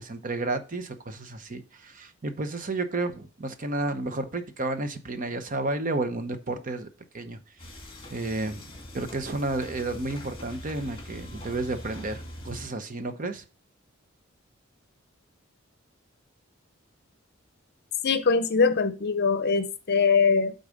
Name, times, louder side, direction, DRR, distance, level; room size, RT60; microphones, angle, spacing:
voice 1, 0.0-6.9 7.1-7.4 8.1-13.4, right 2 dB, 40° right, 0.8 m, -31 dB
sound 1, 7.6-12.7, left 1 dB, 25° left, 2.0 m, -42 dB
voice 2, 18.0-20.5, left 5 dB, 55° left, 0.7 m, -22 dB
8.4 x 4.0 x 5.1 m
head